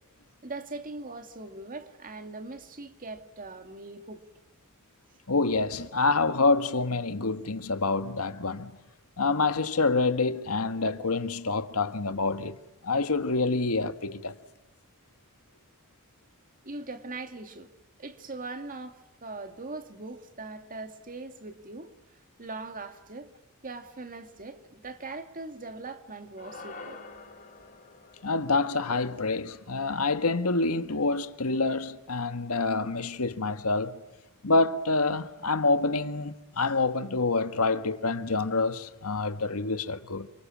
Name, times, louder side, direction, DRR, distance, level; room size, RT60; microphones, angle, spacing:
voice 1, 0.4-4.2 16.6-17.7 18.0-21.9 22.4-23.3 23.6-27.0, right 3 dB, 40° right, 2.2 m, -41 dB
voice 2, 5.3-8.7 9.2-12.6 12.8-14.3 28.2-34.0 34.4-40.3, left 3 dB, 85° left, 1.6 m, -27 dB
sound 1, 26.4-30.8, left 3 dB, 40° left, 5.9 m, -48 dB
29.0 x 25.0 x 7.4 m
head